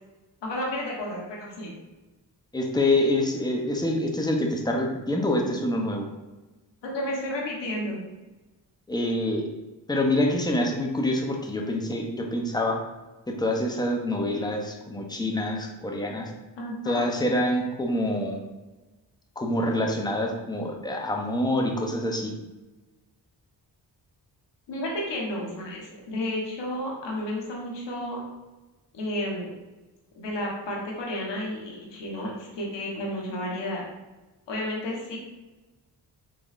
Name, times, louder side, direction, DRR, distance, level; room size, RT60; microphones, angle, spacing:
voice 1, 0.4-1.7 6.8-8.0 16.6-17.1 24.7-28.2 28.9-29.5 30.2-33.8 34.5-35.2, left 1 dB, 85° left, -2 dB, 1.0 m, -32 dB
voice 2, 2.5-6.1 8.9-9.4 9.9-12.8 13.3-16.3 16.9-18.4 19.4-22.3, left 1 dB, 10° left, 1 dB, 0.5 m, -26 dB
3.7 x 3.1 x 2.4 m, 1.1 s
cardioid pair, 80°, 42 cm